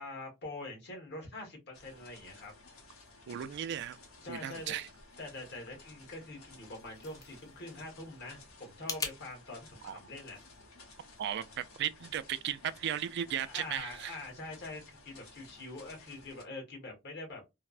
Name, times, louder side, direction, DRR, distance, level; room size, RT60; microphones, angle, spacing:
voice 1, 0.0-2.5 4.2-4.8 5.2-10.4 13.4-17.4, left 2 dB, 55° left, 1.3 m, -44 dB
sound 1, 1.7-16.4, left 3 dB, 90° left, 0.9 m, -56 dB
voice 2, 3.3-4.0 4.3-4.9 9.8-10.0 11.2-14.2, right 10 dB, 55° right, 0.3 m, -36 dB
sound 2, 6.5-9.2, left 3 dB, 15° left, 0.5 m, -43 dB
3.2 x 2.0 x 2.4 m
head